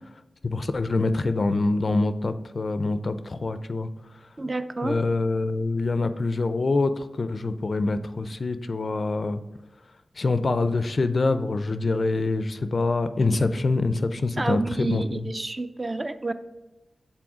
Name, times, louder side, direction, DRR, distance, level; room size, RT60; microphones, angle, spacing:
voice 1, 0.4-3.9 4.8-9.4 10.2-15.2, left 3 dB, 50° left, 11 dB, 0.4 m, -25 dB
voice 2, 4.4-5.0 14.4-16.3, right 2 dB, 30° right, 10 dB, 0.3 m, -29 dB
6.1 x 4.2 x 4.7 m, 1.0 s
wide cardioid pair, 90°, 0 cm